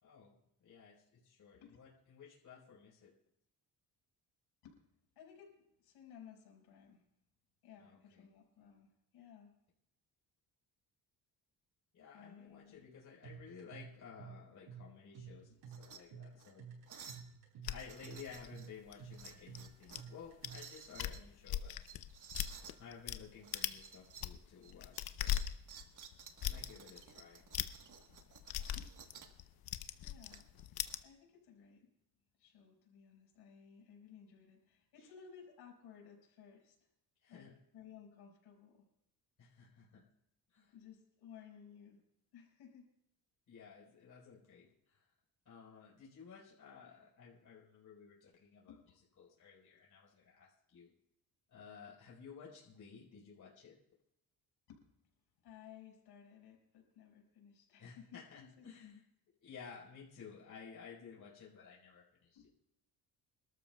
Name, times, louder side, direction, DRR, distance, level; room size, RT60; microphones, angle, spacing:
voice 1, 0.0-3.1 7.8-8.2 11.9-15.5 15.8-16.6 17.0-17.1 17.6-21.7 22.8-25.4 26.4-27.4 37.2-37.5 39.4-40.0 40.5-40.7 43.5-45.1 45.5-48.7 49.2-50.9 51.5-53.7 57.8-59.0 59.4-62.5, left 6 dB, 50° left, -4 dB, 4.2 m, -55 dB
voice 2, 5.2-7.0 7.6-9.6 12.1-13.1 15.5-15.6 28.7-28.9 30.0-30.5 31.0-31.9 32.4-36.8 37.3-38.9 40.7-42.0 42.3-42.9 48.7-48.8 54.7-54.9 55.4-59.0 59.7-59.9 62.3-62.5, left 8 dB, 85° left, 0 dB, 5.2 m, -58 dB
sound 1, 13.2-20.8, right 6 dB, 80° right, 6.6 m, -52 dB
sound 2, 15.6-16.0 16.4-16.5 16.9-17.3 17.7-18.7 19.1-20.1 20.4-21.2 21.8-22.8 23.4-24.3 24.6-29.4 30.3-30.9, right 7 dB, 50° right, 1.3 m, -55 dB
sound 3, 17.6-20.0 20.4-20.6 20.9-23.2 23.5-23.8 24.1-31.0, left 11 dB, 65° left, 0.8 m, -40 dB
27.0 x 13.0 x 2.3 m, 0.78 s
cardioid pair, 115°, 39 cm